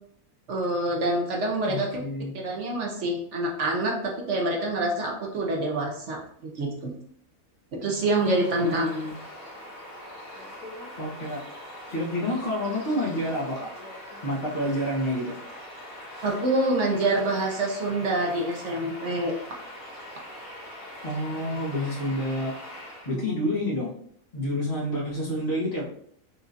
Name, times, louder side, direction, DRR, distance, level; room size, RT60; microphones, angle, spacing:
voice 1, 0.5-2.0 2.3-6.9 7.7-8.9 16.2-19.3, right 2 dB, 60° right, 0 dB, 1.1 m, -26 dB
voice 2, 1.7-2.3 8.6-9.1 11.0-13.7 14.2-15.4 21.0-22.5 23.0-23.9 24.3-25.8, left 1 dB, 40° left, -3 dB, 1.1 m, -29 dB
Bird vocalization bird call bird song, 7.9-23.1, left 1 dB, 80° left, 1.5 m, -42 dB
5.7 x 2.7 x 2.6 m, 0.64 s
omnidirectional pair, 1.4 m